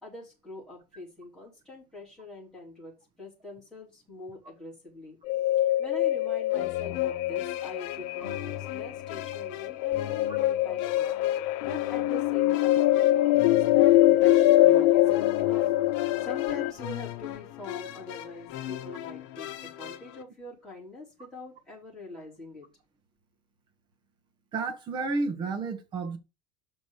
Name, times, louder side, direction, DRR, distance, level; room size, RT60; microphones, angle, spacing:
voice 1, 0.0-2.9 3.2-5.2 5.6-22.7, left 2 dB, 5° left, 4.7 m, -43 dB
sound 1, 5.3-16.7, left 15 dB, 90° left, 0.8 m, -24 dB
sound 2, 6.5-20.2, left 13 dB, 60° left, 1.0 m, -40 dB
voice 2, 24.5-26.2, right 3 dB, 25° right, 1.1 m, -31 dB
6.1 x 5.0 x 6.8 m
cardioid pair, 175°, 19 cm